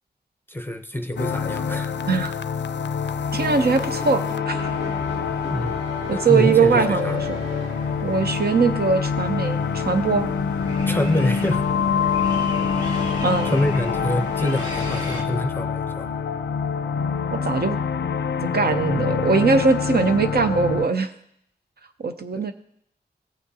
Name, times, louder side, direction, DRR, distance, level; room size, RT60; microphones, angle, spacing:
voice 1, 0.5-1.9 5.5-7.3 10.9-11.7 12.6-12.8 13.4-16.1 22.3-22.4, left 1 dB, 10° left, 6 dB, 0.7 m, -26 dB
sound 1, 1.2-20.9, left 6 dB, 80° left, 0.4 m, -26 dB
voice 2, 3.3-4.7 6.1-7.4 8.0-10.3 13.2-13.5 17.3-17.8 18.4-21.1 22.0-22.5, right 4 dB, 60° right, 7 dB, 0.6 m, -21 dB
sound 2, 3.4-8.3, right 2 dB, 40° right, 2.5 m, -37 dB
sound 3, 4.6-15.2, equal, 25° right, 1.6 m, -37 dB
17.5 x 6.2 x 2.8 m, 0.73 s
wide cardioid pair, 75°, 18 cm